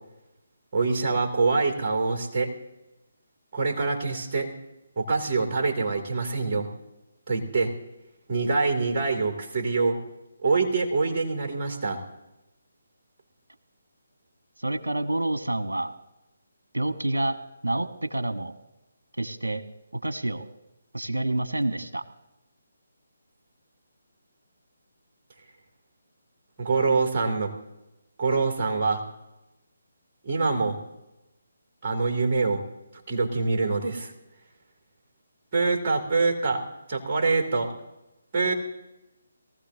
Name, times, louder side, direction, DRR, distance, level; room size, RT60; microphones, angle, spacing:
voice 1, 0.7-2.5 3.5-4.5 5.0-6.7 7.3-7.7 8.3-10.0 10.4-12.0 26.6-27.5 28.2-29.0 30.2-30.8 31.8-32.6 33.1-34.1 35.5-36.6 36.9-37.7 38.3-38.5, right 4 dB, 30° right, 3 dB, 2.8 m, -25 dB
voice 2, 14.6-15.9 16.7-17.4 17.6-18.5 19.2-19.6 20.0-20.4 20.9-22.0, right 1 dB, 75° right, 9 dB, 1.2 m, -28 dB
23.0 x 15.5 x 2.8 m, 0.95 s
figure-of-eight pair, 145°, 0 cm